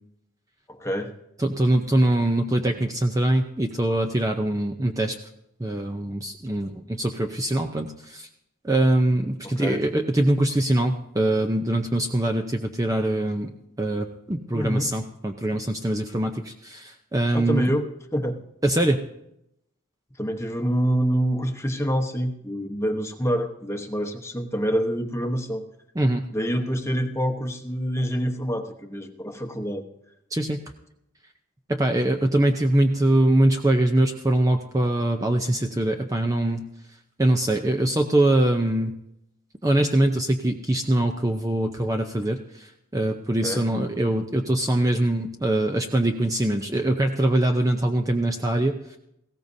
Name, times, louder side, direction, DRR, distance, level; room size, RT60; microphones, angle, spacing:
voice 1, 0.7-1.1 9.4-9.8 14.5-14.9 17.3-18.4 20.2-25.7 26.3-29.8 43.4-43.6, equal, 10° left, 5 dB, 1.0 m, -26 dB
voice 2, 1.4-5.2 5.6-8.3 8.6-13.5 13.8-17.7 18.6-19.0 26.0-26.3 30.3-30.6 31.7-36.6 37.2-39.0 39.6-49.0, right 1 dB, 15° right, 4 dB, 0.6 m, -23 dB
19.0 x 16.5 x 2.7 m, 0.80 s
head